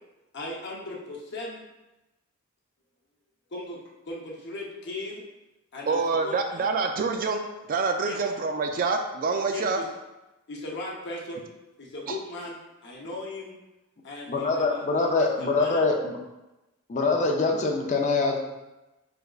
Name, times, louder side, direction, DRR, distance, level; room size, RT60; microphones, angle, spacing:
voice 1, 0.3-1.6 3.5-3.8 4.1-5.3 5.7-6.6 8.0-8.2 9.5-9.9 10.5-11.5 11.8-13.6 14.0-15.9, left 2 dB, 50° left, -2 dB, 0.8 m, -38 dB
voice 2, 5.9-9.8, right 4 dB, 40° right, 4 dB, 0.3 m, -26 dB
voice 3, 14.3-16.2 16.9-18.4, left 3 dB, 35° left, 1 dB, 0.5 m, -24 dB
4.9 x 3.4 x 2.4 m, 1.0 s
head